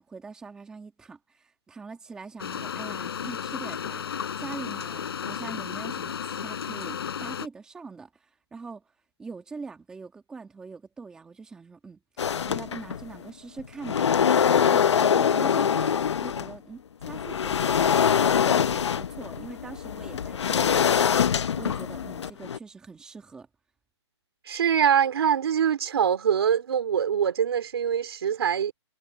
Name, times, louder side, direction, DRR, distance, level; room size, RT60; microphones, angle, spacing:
voice 1, 0.0-8.8 9.2-14.1 14.5-18.0 18.4-23.5, right 4 dB, 5° right, 1.8 m, -43 dB
sound 1, 2.4-7.5, left 8 dB, 60° left, 5.3 m, -33 dB
sound 2, 12.2-13.2 13.6-16.5 17.0-22.6, left 7 dB, 75° left, 0.8 m, -24 dB
voice 2, 24.5-28.7, right 8 dB, 60° right, 3.3 m, -24 dB
hypercardioid pair, 170°, 15 cm